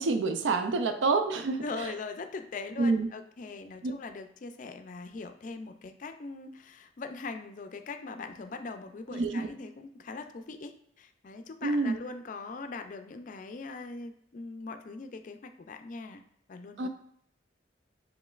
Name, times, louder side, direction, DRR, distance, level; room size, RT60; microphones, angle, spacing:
voice 1, 0.0-1.9 2.8-3.1 3.8-3.9 9.1-9.5 11.6-12.0 16.8-16.9, right 3 dB, 85° right, 7 dB, 0.4 m, -27 dB
voice 2, 1.6-16.2 16.5-16.9, left 3 dB, 45° left, 8 dB, 0.4 m, -41 dB
5.0 x 3.1 x 2.4 m, 0.69 s
head